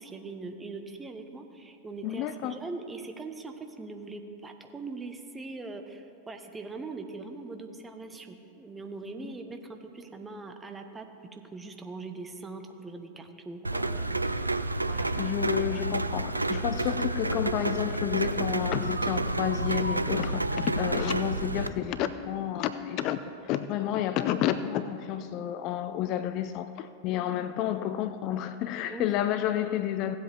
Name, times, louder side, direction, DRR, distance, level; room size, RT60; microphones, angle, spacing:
voice 1, 0.0-14.5 14.9-15.1 28.9-29.1, right 3 dB, 15° right, 0.8 m, -41 dB
voice 2, 2.0-2.6 9.2-9.3 15.2-30.2, left 11 dB, 40° left, 0.3 m, -30 dB
Rain, 13.6-21.7, right 2 dB, 85° right, 0.3 m, -30 dB
16.5 x 7.8 x 3.4 m
figure-of-eight pair, 90°, 0 cm